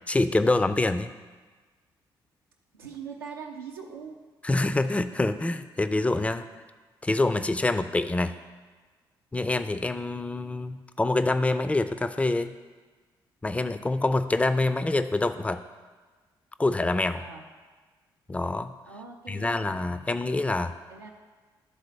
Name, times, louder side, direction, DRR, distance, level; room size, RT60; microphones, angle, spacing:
voice 1, 0.1-1.1 4.4-6.5 7.0-8.3 9.3-12.5 13.4-15.6 16.6-17.2 18.3-18.7 19.3-20.7, left 2 dB, 10° left, 11 dB, 0.4 m, -26 dB
voice 2, 2.7-4.2 17.2-17.4 18.9-19.6 20.9-21.1, right 6 dB, 90° right, -2 dB, 0.4 m, -41 dB
11.0 x 3.8 x 3.2 m, 1.4 s
figure-of-eight pair, 40°, 12 cm